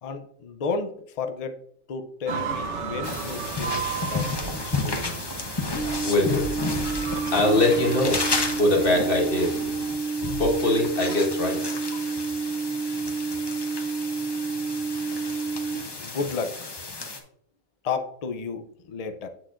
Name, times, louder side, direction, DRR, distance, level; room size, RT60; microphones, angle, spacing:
voice 1, 0.0-1.6 1.9-5.1 16.0-16.7 17.8-19.3, left 4 dB, 90° left, 7 dB, 0.3 m, -32 dB
sound 1, 2.3-10.0, right 6 dB, 60° right, 1.0 m, -35 dB
sound 2, 3.0-17.2, left 3 dB, 25° left, 0.6 m, -32 dB
sound 3, 5.8-15.8, right 4 dB, 65° left, 1.6 m, -30 dB
voice 2, 5.9-6.5 7.3-8.2 8.6-9.6 10.4-11.8, left 2 dB, 40° left, -1 dB, 1.7 m, -22 dB
7.7 x 6.3 x 2.5 m, 0.68 s
omnidirectional pair, 1.5 m